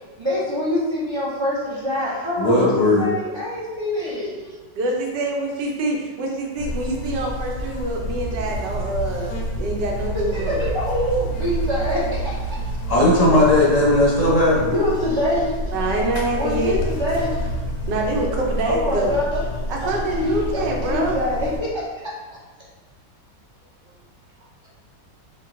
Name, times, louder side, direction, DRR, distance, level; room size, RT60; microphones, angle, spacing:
voice 1, 0.2-4.3 10.3-12.3 12.6-12.7 14.6-15.5 16.3-17.5 18.6-19.4 19.8-21.8, left 1 dB, 45° right, -8 dB, 0.3 m, -25 dB
voice 2, 2.4-3.1 12.9-14.7, left 1 dB, 35° left, -5 dB, 0.7 m, -16 dB
voice 3, 4.8-9.3 9.6-10.6 15.7-16.8 17.9-19.2 19.7-21.2, right 2 dB, 80° right, 0 dB, 1.4 m, -25 dB
Buzz, 6.6-21.6, equal, 65° left, 0.7 m, -28 dB
4.5 x 2.2 x 3.7 m, 1.3 s
omnidirectional pair, 1.9 m